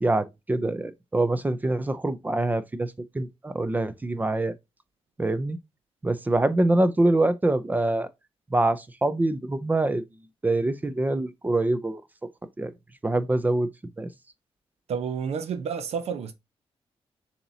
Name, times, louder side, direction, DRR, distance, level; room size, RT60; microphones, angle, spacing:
voice 1, 0.0-4.5 5.2-5.6 6.0-8.1 8.5-10.0 10.4-12.0 12.6-12.7 13.0-13.7 14.0-14.1, right 2 dB, 15° right, 0.4 m, -25 dB
voice 2, 14.9-16.3, right 6 dB, 80° right, 0.7 m, -30 dB
7.0 x 2.8 x 2.7 m
wide cardioid pair, 135°, 11 cm